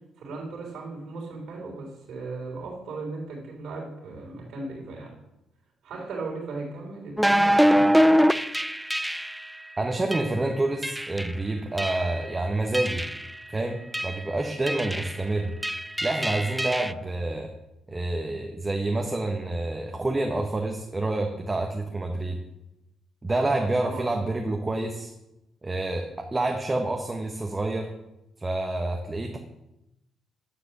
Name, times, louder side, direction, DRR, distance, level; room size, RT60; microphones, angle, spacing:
voice 1, 0.2-5.1 5.8-8.1 23.4-24.1, right 3 dB, 75° right, -2 dB, 3.7 m, -37 dB
sound 1, 7.2-9.5 10.1-10.3 10.8-11.3 11.8-12.2 12.7-13.3 13.9-14.2 14.7-15.2 15.6-16.9, equal, 5° right, 0.3 m, -24 dB
voice 2, 9.8-13.1 13.5-15.5 16.0-17.5 17.9-22.4 23.2-25.1 25.6-27.9 28.4-29.4, right 2 dB, 20° right, 3 dB, 1.1 m, -28 dB
10.0 x 4.9 x 7.2 m, 0.91 s
cardioid pair, 90°, 0 cm